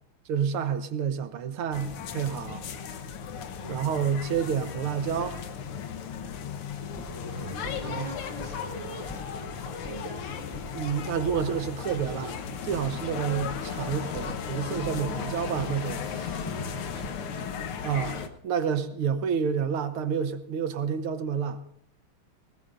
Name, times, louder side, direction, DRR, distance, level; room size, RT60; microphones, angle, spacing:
voice 1, 0.3-2.7 3.7-5.4 7.4-8.1 10.7-16.3 17.4-17.5 17.8-21.6, right 7 dB, 75° right, 1.9 m, -29 dB
sound 1, 1.7-18.3, left 7 dB, 80° left, 2.0 m, -36 dB
sound 2, 6.2-6.3 6.9-7.1 7.6-7.8 8.4-8.5 9.1-9.2 9.8-9.9 10.5-10.6 11.3-11.4 11.9-12.1 12.7-12.8 13.4-13.5 14.1-14.3 14.8-14.9 15.6-15.7 16.3-17.1, equal, 20° left, 0.5 m, -41 dB
voice 2, 6.8-10.3 17.2-17.9, right 2 dB, 35° right, 4.5 m, -44 dB
20.0 x 19.0 x 2.6 m
omnidirectional pair, 2.4 m